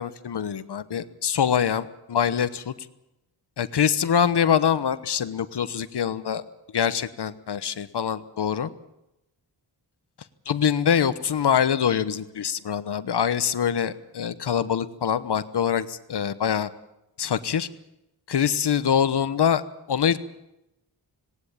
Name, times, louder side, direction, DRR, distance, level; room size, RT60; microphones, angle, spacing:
voice 1, 0.0-2.7 3.6-6.4 6.7-8.7 10.5-16.7 17.2-17.7 18.3-19.6 19.9-20.2, left 8 dB, 65° left, 13 dB, 1.1 m, -24 dB
18.5 x 18.0 x 8.7 m, 0.90 s
wide cardioid pair, 100°, 43 cm